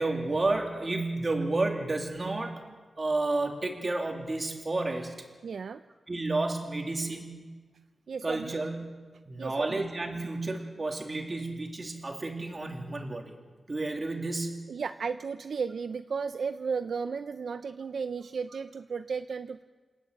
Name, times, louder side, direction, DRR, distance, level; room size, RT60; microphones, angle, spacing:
voice 1, 0.0-2.6 3.0-5.1 6.1-7.5 8.2-8.8 9.2-13.3 13.7-14.6, right 2 dB, 30° right, 2 dB, 3.1 m, -31 dB
voice 2, 5.4-5.8 8.1-8.5 9.4-9.8 14.7-19.6, right 5 dB, 70° right, 10 dB, 0.5 m, -34 dB
28.5 x 11.0 x 9.1 m, 1.4 s
wide cardioid pair, 140°, 0 cm